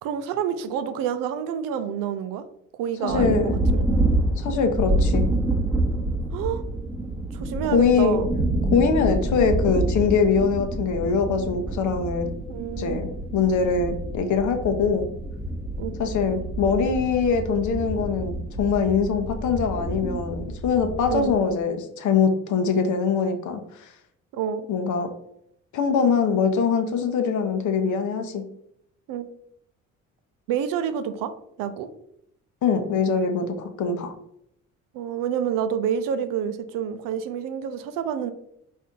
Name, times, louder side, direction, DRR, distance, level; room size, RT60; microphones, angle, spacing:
voice 1, 0.0-2.4 2.7-3.9 6.3-6.6 7.3-8.3 12.5-13.2 15.8-16.0 21.1-21.3 24.3-24.6 29.1-29.3 30.5-31.3 31.6-31.9 34.9-38.3, right 8 dB, 85° right, 10 dB, 0.5 m, -28 dB
voice 2, 3.0-3.6 4.4-5.2 7.7-8.2 8.7-12.3 12.8-15.1 16.0-23.9 24.7-25.1 25.7-28.4 32.6-34.1, left 5 dB, 65° left, 6 dB, 0.7 m, -23 dB
sound 1, 3.1-21.3, right 1 dB, ahead, 0.8 m, -27 dB
4.2 x 2.7 x 3.6 m, 0.73 s
cardioid pair, 90°, 32 cm